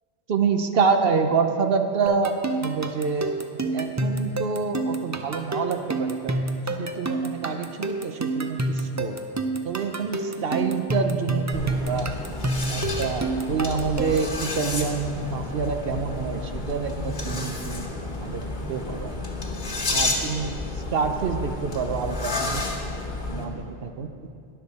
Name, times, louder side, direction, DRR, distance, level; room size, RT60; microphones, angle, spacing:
voice 1, 0.3-2.4 2.6-3.4 3.7-9.2 9.6-12.1 12.7-18.4 18.7-19.2 19.9-22.7 23.3-24.1, right 5 dB, 65° right, 6 dB, 0.9 m, -27 dB
sound 1, 2.1-14.4, right 2 dB, 25° right, 0.4 m, -28 dB
sound 2, 11.5-23.5, left 2 dB, 45° left, 1.4 m, -31 dB
20.0 x 6.7 x 4.2 m, 2.4 s
omnidirectional pair, 1.1 m